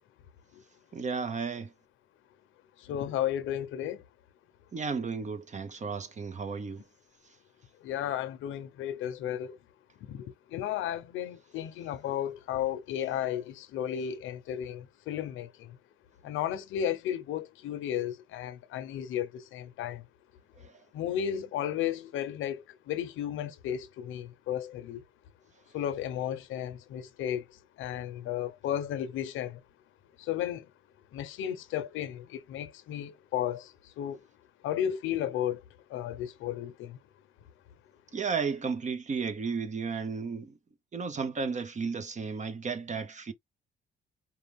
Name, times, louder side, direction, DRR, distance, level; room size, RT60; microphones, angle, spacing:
voice 1, 0.9-1.7 4.7-6.8 20.6-20.7 38.1-40.6 40.9-43.3, right 5 dB, 35° right, 1.0 m, -33 dB
voice 2, 2.8-4.0 7.8-9.6 10.1-15.8 16.2-20.0 20.9-25.0 25.7-29.6 30.2-30.7 31.1-34.2 34.6-35.6 35.9-37.0, left 10 dB, 90° left, 0.8 m, -34 dB
4.8 x 2.4 x 3.5 m
cardioid pair, 90°, 20 cm